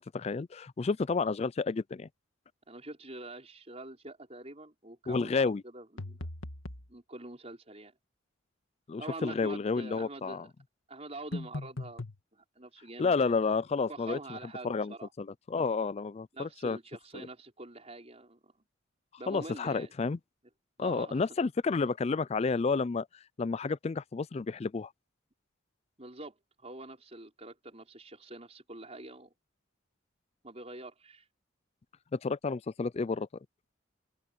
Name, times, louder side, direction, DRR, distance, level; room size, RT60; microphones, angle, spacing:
voice 1, 0.0-2.1 5.1-5.6 8.9-10.4 13.0-14.4 14.6-16.8 17.1-17.3 19.3-20.2 20.8-23.1 23.4-24.9 32.1-33.3, left 4 dB, 30° left, 0.3 m, -31 dB
voice 2, 2.7-6.2 6.9-7.9 9.0-10.5 10.9-12.0 12.3-13.4 13.9-15.1 16.3-18.5 19.2-19.9 20.8-21.3 26.0-29.3 30.4-31.3, right 2 dB, 30° right, 5.3 m, -45 dB
sound 1, 6.0-6.9 11.3-12.2, left 2 dB, 85° left, 1.9 m, -39 dB
head